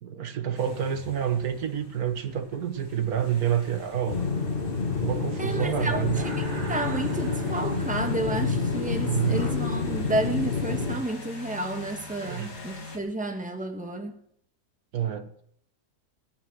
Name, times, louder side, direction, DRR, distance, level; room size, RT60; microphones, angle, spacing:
voice 1, 0.0-4.2 5.0-6.2 9.1-9.4 12.2-12.6 14.9-15.3, right 9 dB, 85° right, 1.7 m, -28 dB
sound 1, 0.6-13.0, left 4 dB, 70° left, 2.8 m, -43 dB
sound 2, 4.1-11.0, left 4 dB, 40° left, 1.8 m, -28 dB
voice 2, 5.4-14.1, right 1 dB, 5° right, 1.5 m, -31 dB
sound 3, 6.0-8.3, right 3 dB, 55° right, 2.0 m, -40 dB
18.0 x 10.0 x 6.3 m
omnidirectional pair, 1.5 m